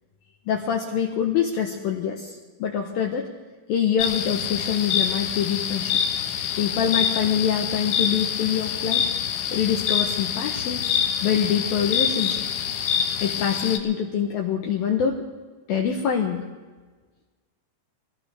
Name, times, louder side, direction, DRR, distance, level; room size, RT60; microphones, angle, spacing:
voice 1, 0.5-3.3 3.7-6.0 6.6-9.0 9.5-10.8 11.2-12.4 13.2-15.3 15.7-16.4, left 8 dB, 70° left, 1 dB, 2.3 m, -25 dB
sound 1, 4.0-13.8, left 8 dB, 85° left, 3.6 m, -26 dB
23.0 x 17.5 x 3.4 m, 1.4 s
omnidirectional pair, 5.3 m